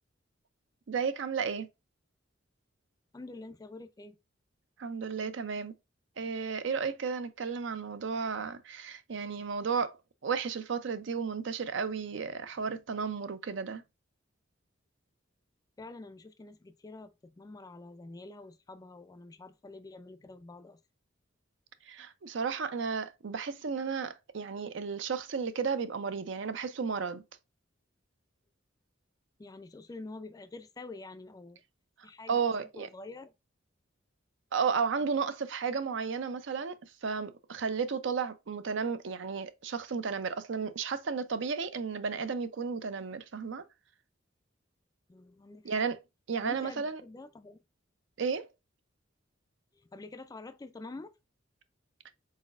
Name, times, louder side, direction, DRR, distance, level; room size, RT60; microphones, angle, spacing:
voice 1, 0.9-1.7 4.8-5.7 6.2-10.0 10.2-13.8 21.9-27.2 32.3-32.9 34.5-43.6 45.6-46.0 46.3-47.0 48.2-48.5, right 5 dB, 65° right, 0.5 m, -33 dB
voice 2, 3.1-4.2 15.8-20.8 29.4-31.6 32.0-33.3 45.1-45.7 46.4-47.6 49.7-51.1, left 2 dB, 20° left, 0.3 m, -47 dB
4.1 x 4.0 x 2.4 m
head